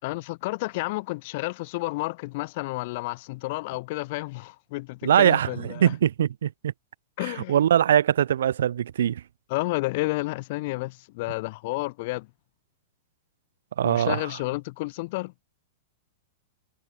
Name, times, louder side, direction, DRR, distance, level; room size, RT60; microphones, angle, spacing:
voice 1, 0.0-5.9 7.2-7.6 9.5-12.3 13.8-15.3, left 22 dB, 45° left, 6.5 m, -31 dB
voice 2, 5.0-6.7 7.2-9.2 13.8-14.3, right 10 dB, 85° right, 4.8 m, -22 dB
supercardioid pair, 160°, 0 cm